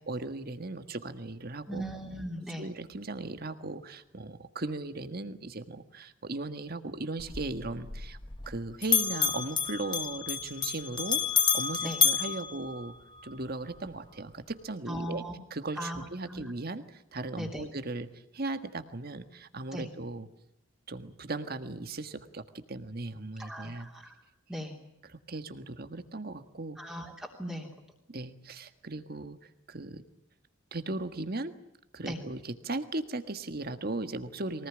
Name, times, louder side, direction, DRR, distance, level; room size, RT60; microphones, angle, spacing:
voice 1, 0.1-1.8 2.6-8.2 8.5-11.2 11.5-12.9 13.2-15.2 15.5-18.1 18.3-20.3 20.9-23.9 25.0-26.8 28.1-29.4 29.7-30.0 30.7-31.6 31.9-34.7, right 2 dB, 50° right, 9 dB, 1.6 m, -37 dB
voice 2, 1.7-2.6 11.8-12.0 14.9-15.3 15.8-16.0 16.3-16.4 17.4-17.6 19.7-19.9 23.4-24.1 24.5-24.7 26.8-27.7 32.1-32.2, equal, 5° right, -1 dB, 3.2 m, -38 dB
Bell, 7.2-8.6 8.8-13.3, left 8 dB, 25° left, 1.4 m, -29 dB
23.5 x 19.0 x 9.9 m, 0.81 s
head